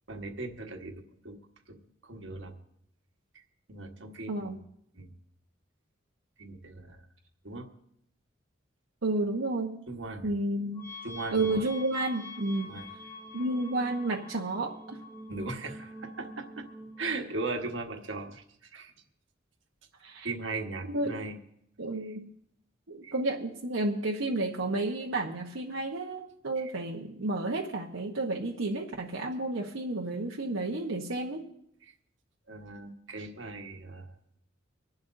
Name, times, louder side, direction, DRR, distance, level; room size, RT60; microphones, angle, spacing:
voice 1, 0.1-1.4 1.7-1.8 2.0-2.5 3.3-3.4 3.7-4.5 4.9-5.1 6.4-7.0 7.4-7.7 9.9-10.3 11.0-11.7 12.6-12.9 15.3-16.7 17.0-18.9 20.2-21.4 23.0-23.1 26.6-26.7 31.9-32.0 32.5-34.1, right 3 dB, 70° right, 4 dB, 1.4 m, -38 dB
voice 2, 4.3-4.6 9.0-9.9 10.2-10.9 11.3-12.7 13.3-15.0 20.0-20.3 20.8-21.2 21.8-22.3 22.9-31.4, right 2 dB, 90° right, -1 dB, 1.0 m, -31 dB
sound 1, 10.8-17.2, left 2 dB, 10° left, 1.0 m, -45 dB
25.0 x 11.5 x 2.6 m, 0.74 s
head